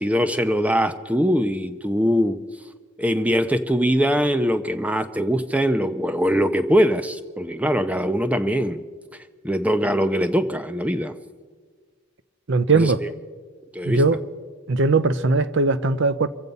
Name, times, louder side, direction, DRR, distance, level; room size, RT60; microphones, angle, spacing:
voice 1, 0.0-2.4 3.0-8.8 9.4-11.2 12.7-13.1 13.7-14.0, equal, 5° right, 0.5 m, -22 dB
voice 2, 12.5-13.0 13.8-14.2 14.7-16.3, right 3 dB, 55° right, 0.6 m, -19 dB
24.5 x 8.2 x 5.4 m
head